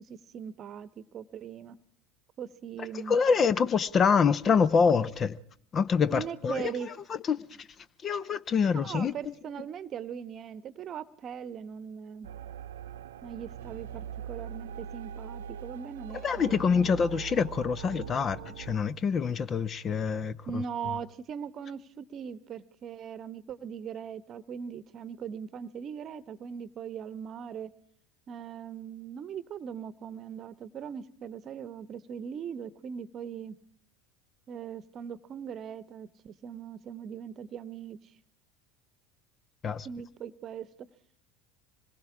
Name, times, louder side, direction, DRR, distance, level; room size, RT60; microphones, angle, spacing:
voice 1, 0.0-1.8 2.4-3.2 6.1-6.9 8.7-12.3 13.2-16.2 16.5-16.9 20.5-27.7 28.3-33.6 34.5-38.0 39.8-40.9, right 7 dB, 40° right, 1.0 m, -40 dB
voice 2, 3.1-5.4 5.7-7.7 8.0-9.1 16.2-20.6 39.6-39.9, left 6 dB, 35° left, 0.7 m, -26 dB
sound 1, 12.2-18.8, right 9 dB, 75° right, 0.8 m, -42 dB
25.5 x 21.5 x 4.9 m
figure-of-eight pair, 75°, 0 cm